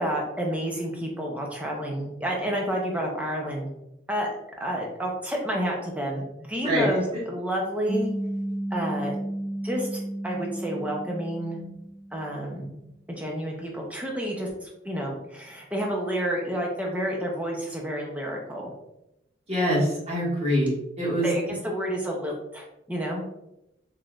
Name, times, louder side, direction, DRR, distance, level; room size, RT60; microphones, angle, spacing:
voice 1, 0.0-3.7 4.1-4.3 4.6-8.1 8.7-9.2 9.6-11.6 12.1-12.8 13.1-18.7 21.2-23.3, equal, 5° right, -1 dB, 0.5 m, -30 dB
sound 1, 7.9-12.5, right 1 dB, 25° left, 1.2 m, -33 dB
voice 2, 19.5-21.3, equal, 35° right, -6 dB, 1.4 m, -24 dB
4.0 x 3.1 x 2.3 m, 0.87 s
head